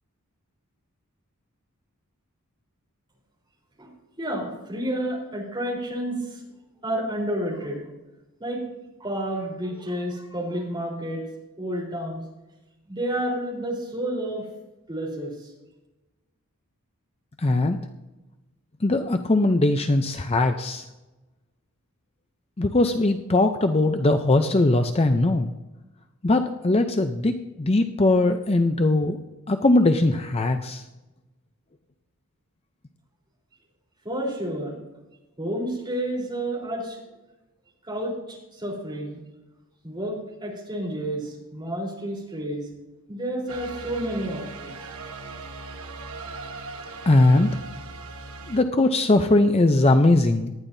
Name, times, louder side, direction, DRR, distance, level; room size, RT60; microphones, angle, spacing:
voice 1, 4.2-6.4 6.8-7.8 8.4-8.6 9.0-11.2 11.6-12.2 12.9-14.5 14.9-15.5 34.0-34.8 35.4-37.0 37.8-39.2 39.8-42.7 43.1-44.7, right 1 dB, 20° right, -3 dB, 3.9 m, -30 dB
voice 2, 17.4-17.8 18.8-20.9 22.6-25.5 26.2-29.2 29.5-30.8 47.1-47.5 48.5-50.5, left 2 dB, 25° left, 7 dB, 0.6 m, -20 dB
sound 1, 43.5-48.6, right 3 dB, 75° right, 1.2 m, -39 dB
19.0 x 12.0 x 2.7 m, 1.1 s
head